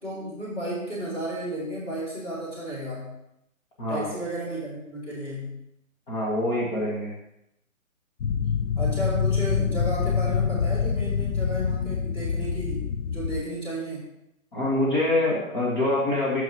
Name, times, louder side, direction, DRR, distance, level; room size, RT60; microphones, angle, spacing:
voice 1, 0.0-3.1 3.9-5.6 8.8-14.1, equal, 15° left, -8 dB, 2.5 m, -33 dB
voice 2, 3.8-4.1 6.1-7.1 14.5-16.4, left 1 dB, 35° left, -6 dB, 1.9 m, -25 dB
sound 1, 8.2-13.4, left 6 dB, 55° left, 0.5 m, -26 dB
8.9 x 7.2 x 2.9 m, 0.83 s
hypercardioid pair, 150°, 42 cm